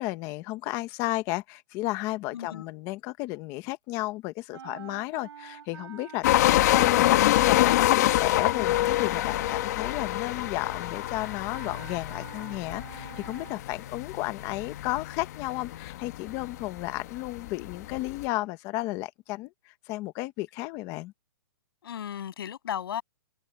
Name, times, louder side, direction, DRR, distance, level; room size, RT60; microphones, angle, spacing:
voice 1, 0.0-6.3 6.5-21.1, left 19 dB, 20° left, 1.0 m, -33 dB
voice 2, 2.3-2.7 21.8-23.0, left 9 dB, 60° left, 7.6 m, -35 dB
sound 1, 4.5-13.7, right 8 dB, 75° right, 7.8 m, -49 dB
sound 2, 6.2-18.2, left 15 dB, 40° left, 1.7 m, -26 dB
hypercardioid pair, 175°, 14 cm